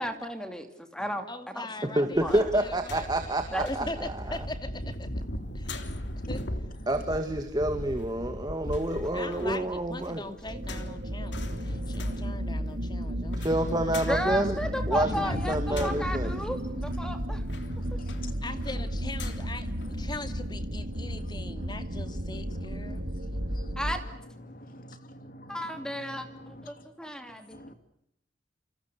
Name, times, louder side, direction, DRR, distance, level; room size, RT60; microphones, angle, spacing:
voice 1, 0.0-1.3 1.5-1.7 2.0-2.5 3.5-3.9 14.1-16.6 17.0-17.4 23.8-24.0 25.5-27.6, equal, 5° left, 2.6 m, -33 dB
voice 2, 1.3-3.1 3.7-5.2 5.5-5.8 6.3-6.4 9.1-13.4 13.7-14.1 15.0-16.1 18.4-23.0, left 2 dB, 25° left, 2.5 m, -40 dB
voice 3, 1.9-4.2 6.9-10.3 13.3-14.6 14.9-15.1 15.5-16.3, right 1 dB, 20° right, 2.2 m, -28 dB
sound 1, 2.1-20.5 20.9-21.0, left 1 dB, 65° left, 3.3 m, -40 dB
voice 4, 5.2-6.3 11.5-12.4 15.3-15.6 17.6-18.3 19.8-20.1 21.1-21.2 21.6-21.7 22.5-23.8 24.5-26.9 27.5-27.7, equal, 50° left, 3.0 m, -45 dB
sound 2, 10.4-24.0, equal, 65° right, 3.3 m, -33 dB
30.0 x 27.5 x 6.8 m
head